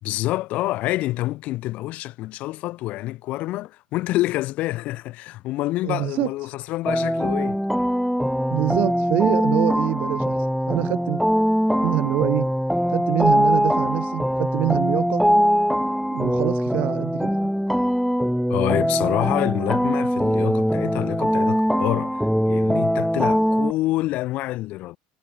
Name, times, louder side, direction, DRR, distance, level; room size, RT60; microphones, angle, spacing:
voice 1, 0.0-7.6 18.5-25.0, left 17 dB, 35° left, 4.7 m, -27 dB
voice 2, 5.8-6.3 8.5-11.2 11.8-12.5 12.9-15.2 16.1-17.5, right 20 dB, 40° right, 1.9 m, -25 dB
sound 1, 6.9-23.7, equal, ahead, 1.1 m, -22 dB
cardioid pair, 180°, 4 cm